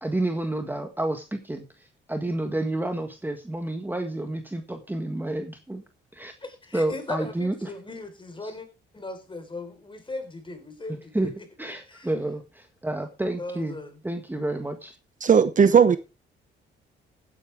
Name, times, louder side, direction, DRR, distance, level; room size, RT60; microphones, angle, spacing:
voice 1, 0.0-5.8 6.1-6.3 6.7-7.7 8.4-8.5 11.1-11.3 11.6-13.8 14.0-14.9, right 1 dB, 10° right, 1.6 m, -30 dB
voice 2, 6.4-8.7 8.9-11.3 11.7-12.1 13.4-14.0, left 2 dB, 25° left, 4.4 m, -38 dB
voice 3, 15.2-16.0, right 7 dB, 40° right, 0.9 m, -16 dB
16.0 x 10.0 x 3.5 m
cardioid pair, 90°, 20 cm